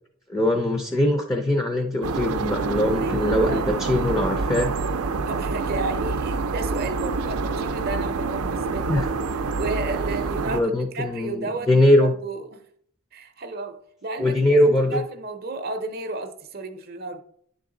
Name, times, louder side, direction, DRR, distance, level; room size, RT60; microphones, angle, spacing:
voice 1, 0.3-4.7 8.9-9.1 10.4-12.1 14.2-15.0, left 1 dB, 15° left, 0.5 m, -21 dB
sound 1, 2.0-10.6, right 4 dB, 90° right, 0.5 m, -27 dB
voice 2, 3.0-3.7 5.2-9.0 9.6-11.7 12.0-12.6 13.1-14.6 14.9-17.2, right 2 dB, 45° right, 0.6 m, -33 dB
9.9 x 3.9 x 3.8 m
head